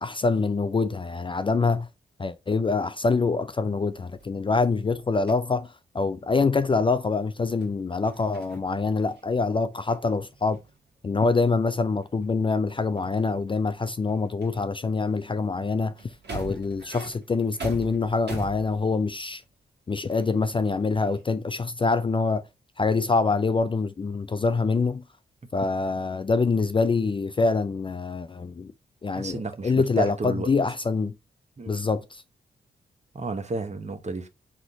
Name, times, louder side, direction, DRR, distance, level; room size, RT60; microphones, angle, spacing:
voice 1, 0.0-1.9 2.2-10.6 11.0-15.9 16.3-19.4 19.9-22.4 22.8-25.0 25.5-28.7 29.0-31.1 31.7-32.2, left 4 dB, 30° left, 0.4 m, -25 dB
sound 1, 3.7-5.5 6.3-6.6 7.6-7.7 8.0-8.7 9.0-19.6 20.0-21.4, right 3 dB, 65° right, 1.5 m, -44 dB
voice 2, 29.1-30.5 31.6-31.8 33.1-34.3, right 3 dB, 40° right, 1.0 m, -32 dB
3.8 x 3.0 x 3.9 m
supercardioid pair, 40°, 19 cm